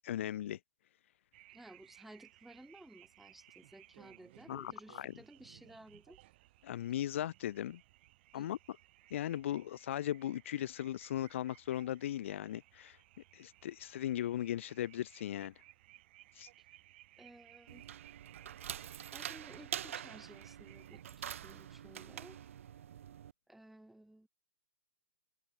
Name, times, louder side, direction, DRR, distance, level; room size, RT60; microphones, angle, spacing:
voice 1, 0.0-0.6 4.5-4.7 5.0-5.1 6.6-7.8 8.3-8.6 9.1-13.0 13.3-15.5 16.4-16.5, left 12 dB, 60° left, 1.1 m, -37 dB
sound 1, 1.3-21.0, right 17 dB, 45° right, 7.7 m, -62 dB
voice 2, 1.5-6.2 8.3-8.5 16.6-16.8 17.2-17.9 18.8-22.4 23.5-24.3, right 1 dB, 5° right, 5.3 m, -56 dB
sound 2, 17.7-23.3, right 10 dB, 65° right, 2.3 m, -45 dB
hypercardioid pair, 130°, 8 cm